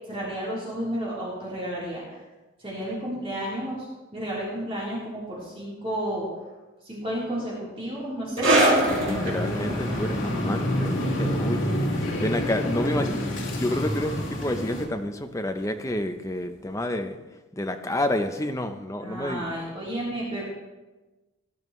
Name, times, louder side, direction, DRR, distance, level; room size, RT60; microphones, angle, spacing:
voice 1, 0.1-2.2 2.6-3.9 4.1-6.2 6.8-8.8 19.0-20.4, equal, 30° right, -8 dB, 3.7 m, -32 dB
sound 1, 8.4-15.4 15.6-15.9 16.6-16.7, right 1 dB, 80° right, 2.4 m, -28 dB
sound 2, 8.9-14.9, equal, 75° left, 2.4 m, -28 dB
voice 2, 9.0-13.2 13.6-17.2 17.6-19.5, left 1 dB, 15° left, 6 dB, 0.7 m, -29 dB
17.5 x 11.0 x 3.2 m, 1.2 s
head